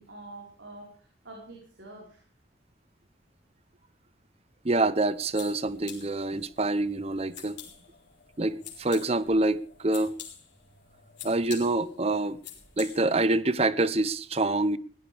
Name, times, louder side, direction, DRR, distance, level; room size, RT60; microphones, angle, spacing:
voice 1, 0.0-2.2, right 2 dB, 85° right, 4.6 m, -46 dB
voice 2, 4.6-7.6 8.4-10.1 11.2-12.4 12.8-14.8, right 2 dB, 35° right, 0.7 m, -26 dB
sound 1, 5.0-13.3, left 9 dB, 70° left, 4.3 m, -47 dB
20.5 x 17.5 x 3.5 m
head